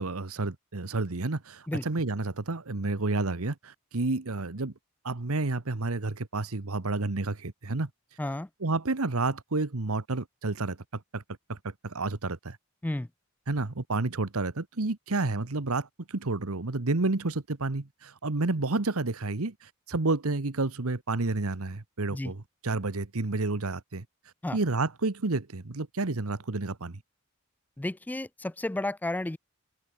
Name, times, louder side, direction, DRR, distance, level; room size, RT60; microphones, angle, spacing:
voice 1, 0.0-4.7 5.0-7.9 8.6-11.2 11.5-12.6 13.5-24.0 24.5-27.0, right 3 dB, 80° right, 1.3 m, -30 dB
voice 2, 27.8-29.4, left 1 dB, 10° left, 0.3 m, -32 dB
open air
head